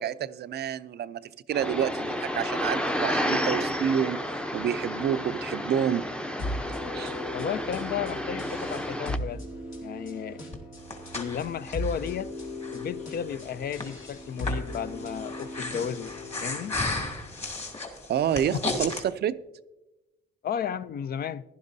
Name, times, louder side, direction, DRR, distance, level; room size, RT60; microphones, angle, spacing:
voice 1, 0.0-4.2 4.5-6.1 6.9-7.1 18.1-19.4, right 9 dB, 55° right, 0.4 m, -28 dB
sound 1, 1.5-9.2, equal, 5° left, 0.6 m, -31 dB
sound 2, 6.4-17.1, left 1 dB, 80° left, 3.0 m, -38 dB
voice 2, 7.3-9.5 9.8-10.4 11.1-12.3 12.7-16.1 16.4-16.7 18.5-18.6 20.4-21.4, left 8 dB, 50° left, 0.4 m, -33 dB
Breathing, 10.5-19.0, left 3 dB, 30° left, 2.2 m, -35 dB
15.0 x 11.0 x 2.7 m
cardioid pair, 90°, 20 cm